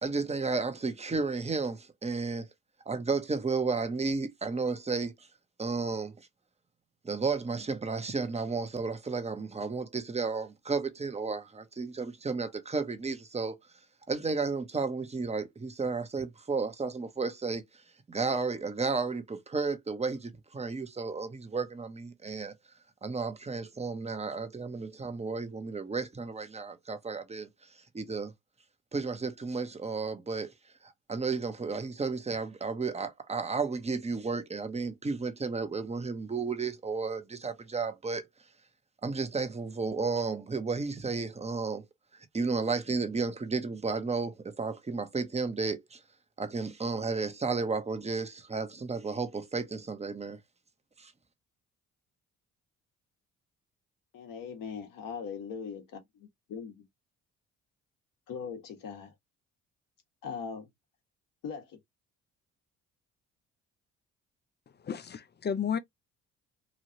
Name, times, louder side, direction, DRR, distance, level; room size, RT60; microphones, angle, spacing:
voice 1, 0.0-2.5 2.9-5.1 5.6-6.2 7.0-13.5 14.1-17.6 18.1-22.5 23.0-27.5 27.9-28.3 28.9-30.5 30.8-38.3 39.0-41.8 42.3-46.0 46.4-50.4 51.0-51.1, right 4 dB, 20° right, 0.8 m, -33 dB
voice 2, 54.1-56.9 58.3-59.1 60.2-60.7 61.4-61.8, left 6 dB, 65° left, 1.3 m, -40 dB
voice 3, 64.8-65.8, left 7 dB, 30° left, 0.5 m, -32 dB
3.1 x 2.4 x 2.7 m
supercardioid pair, 60°, 35 cm